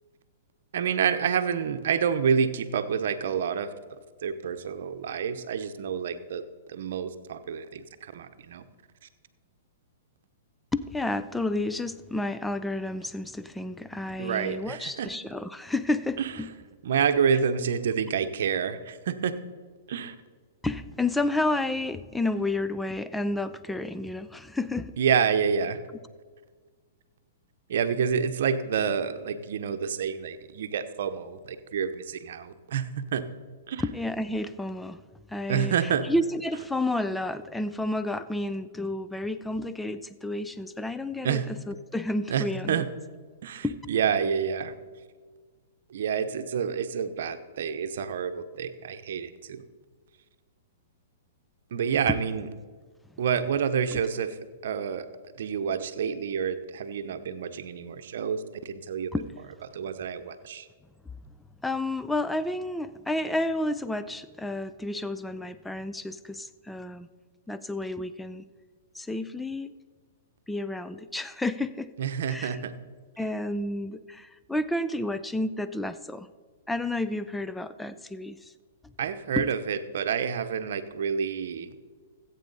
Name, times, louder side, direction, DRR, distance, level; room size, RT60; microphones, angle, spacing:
voice 1, 0.7-3.7 4.2-6.4 6.7-8.6 14.2-15.1 16.2-16.3 16.8-19.3 19.9-20.1 25.0-25.8 27.7-33.2 33.7-33.8 35.5-36.0 41.2-41.5 42.3-42.9 43.4-44.7 45.9-49.6 51.7-52.5 53.2-54.4 54.6-55.0 55.4-59.1 59.7-60.7 72.0-72.7 79.0-81.7, right 7 dB, 70° right, 9 dB, 0.8 m, -28 dB
voice 2, 10.7-16.5 20.6-24.9 33.8-35.0 35.3-35.7 36.0-42.8 43.6-43.8 52.1-52.2 53.9-54.0 59.1-59.3 61.6-67.1 67.5-68.4 68.9-69.7 70.5-71.9 72.3-72.6 73.2-76.3 76.7-78.5 79.4-79.5, left 2 dB, 5° left, 12 dB, 0.5 m, -31 dB
14.5 x 8.4 x 4.0 m, 1.5 s
hypercardioid pair, 135°, 0 cm